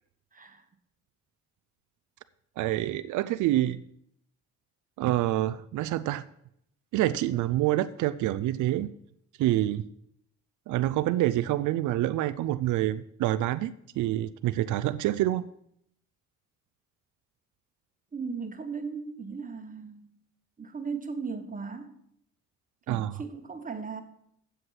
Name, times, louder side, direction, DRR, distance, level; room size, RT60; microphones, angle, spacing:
voice 1, 2.6-3.8 5.0-6.3 6.9-8.9 9.4-9.9 10.7-15.4 22.9-23.2, right 14 dB, 80° right, 13 dB, 0.5 m, -27 dB
voice 2, 18.1-20.1 20.6-21.9 22.9-24.0, right 5 dB, 25° right, 7 dB, 1.4 m, -37 dB
7.8 x 7.8 x 5.9 m, 0.71 s
cardioid pair, 90°, 30 cm